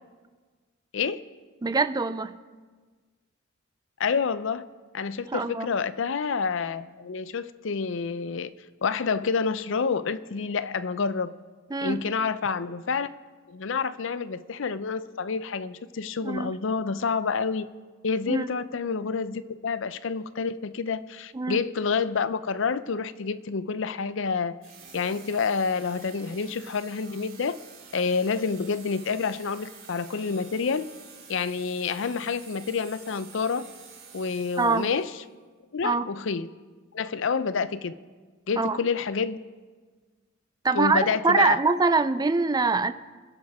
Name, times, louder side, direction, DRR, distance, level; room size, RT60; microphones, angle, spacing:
voice 1, 1.6-2.4 5.3-5.7 11.7-12.0 16.2-16.5 18.3-18.5 21.3-21.6 34.6-34.9 35.8-36.1 38.6-38.8 40.6-42.9, right 4 dB, 20° right, 12 dB, 0.4 m, -24 dB
voice 2, 4.0-4.6 4.9-8.5 8.8-11.3 11.8-13.1 13.5-17.7 18.0-24.5 24.9-27.6 27.9-30.9 31.3-33.6 34.1-35.1 35.7-36.5 36.9-37.9 38.5-39.4 40.7-41.6, left 5 dB, 65° left, 15 dB, 0.5 m, -28 dB
sound 1, 24.6-35.2, right 5 dB, 45° right, 2.9 m, -49 dB
26.5 x 10.5 x 3.6 m, 1.4 s
head